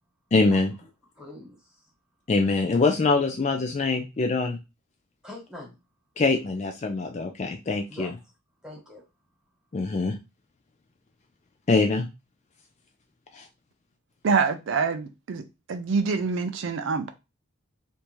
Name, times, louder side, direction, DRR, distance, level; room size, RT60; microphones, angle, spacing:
voice 1, 0.3-0.7 2.3-4.6 6.2-8.1 9.7-10.2 11.7-12.1 13.3-13.5, left 3 dB, 30° left, 0.3 m, -24 dB
voice 2, 1.1-1.9 5.2-5.8 7.9-8.1 8.6-9.0, left 1 dB, 5° right, 1.3 m, -43 dB
voice 3, 14.2-15.4 15.7-17.1, right 5 dB, 60° right, 0.4 m, -25 dB
3.4 x 2.6 x 2.9 m
head